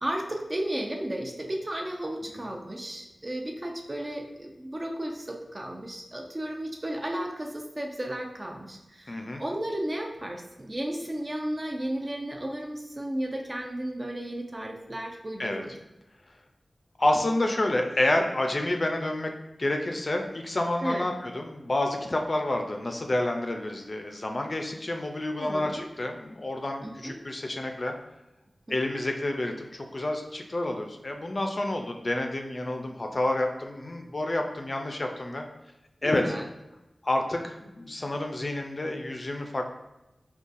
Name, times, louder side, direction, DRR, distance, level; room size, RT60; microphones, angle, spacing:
voice 1, 0.0-15.8 20.8-21.1 25.4-25.8 26.8-27.1 28.7-28.8 36.0-36.4, right 1 dB, 40° right, 1 dB, 0.5 m, -34 dB
voice 2, 9.1-9.4 15.4-15.6 17.0-19.3 19.6-27.9 28.7-35.4 36.0-36.3 37.0-39.6, left 1 dB, 55° left, 3 dB, 0.4 m, -29 dB
3.8 x 2.3 x 2.5 m, 0.95 s
cardioid pair, 40°, 0 cm